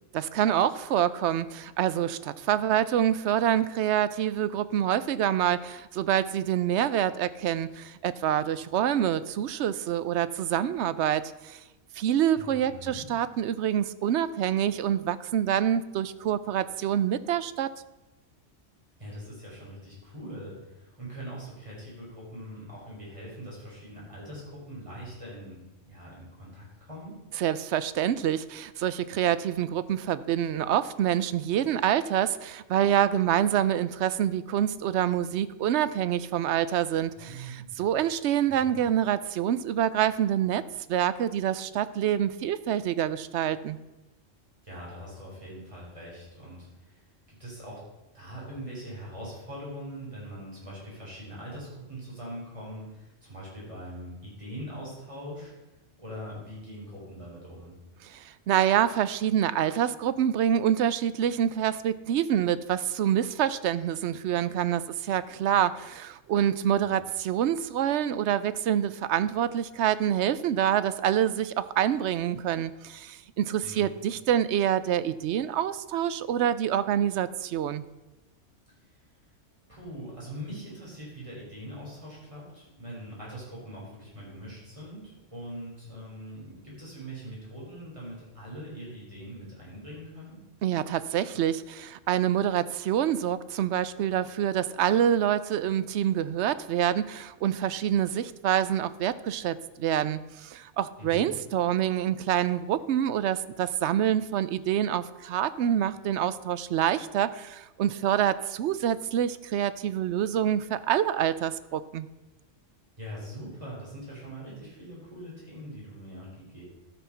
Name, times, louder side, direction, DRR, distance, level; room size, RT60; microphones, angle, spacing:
voice 1, 0.1-11.6 11.9-17.7 27.4-40.6 40.9-43.8 58.1-77.8 90.6-112.1, right 10 dB, 70° right, 15 dB, 0.8 m, -26 dB
voice 2, 12.3-13.1 19.0-25.6 25.8-27.1 37.2-37.8 38.5-38.8 44.6-47.8 48.1-55.5 56.0-57.7 66.8-67.0 73.6-74.0 78.9-79.0 79.7-90.4 101.0-101.3 113.0-116.6, equal, 25° right, -6 dB, 4.8 m, -42 dB
12.5 x 6.1 x 5.6 m, 1.0 s
omnidirectional pair, 1.3 m